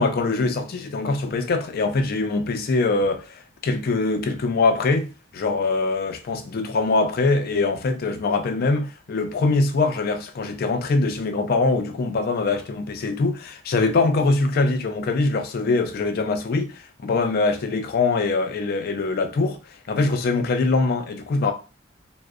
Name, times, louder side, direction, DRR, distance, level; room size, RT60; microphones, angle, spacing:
voice 1, 0.0-19.6 19.9-21.5, left 3 dB, 50° left, 0.4 m, -23 dB
2.5 x 2.0 x 2.4 m
head